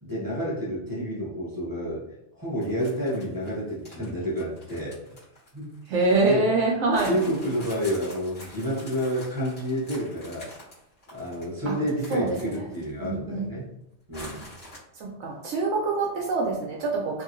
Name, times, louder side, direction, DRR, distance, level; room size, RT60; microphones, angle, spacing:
voice 1, 0.0-2.0 2.4-5.0 5.5-5.7 6.0-6.5 7.0-10.5 11.1-13.6 14.1-14.5, equal, 20° right, -6 dB, 0.8 m, -29 dB
sound 1, 2.6-6.3 6.9-13.1 13.4-13.5 14.1-14.8, left 1 dB, 55° left, 1.7 m, -45 dB
voice 2, 5.9-7.1 11.7-11.8 12.1-12.7 13.0-13.5 14.9-17.2, right 3 dB, 80° right, -1 dB, 0.9 m, -25 dB
3.0 x 2.7 x 2.5 m, 0.82 s
omnidirectional pair, 1.3 m